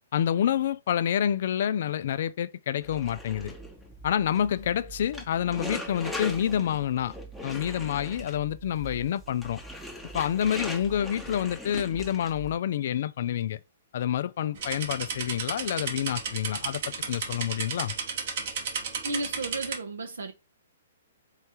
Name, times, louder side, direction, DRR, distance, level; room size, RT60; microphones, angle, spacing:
voice 1, 0.1-3.5 4.0-7.1 7.4-9.6 10.1-13.6 13.9-17.9, left 10 dB, 55° left, 0.3 m, -28 dB
sound 1, 2.8-12.5, equal, ahead, 0.9 m, -40 dB
sound 2, 14.6-19.8, right 6 dB, 55° right, 1.0 m, -34 dB
voice 2, 19.0-20.3, right 2 dB, 75° right, 0.8 m, -33 dB
4.5 x 3.3 x 2.9 m
hypercardioid pair, 125°, 0 cm